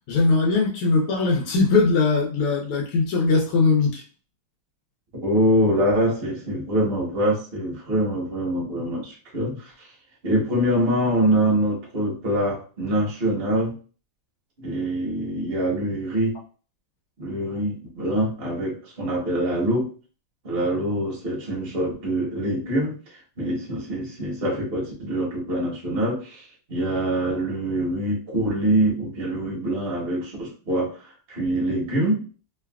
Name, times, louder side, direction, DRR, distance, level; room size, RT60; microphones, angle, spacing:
voice 1, 0.1-4.0, left 3 dB, 90° left, -2 dB, 1.6 m, -20 dB
voice 2, 5.2-9.9 10.2-13.8 14.6-16.4 17.2-19.9 20.4-32.2, right 1 dB, 40° right, -3 dB, 0.9 m, -24 dB
3.7 x 2.3 x 2.3 m, 0.38 s
omnidirectional pair, 2.4 m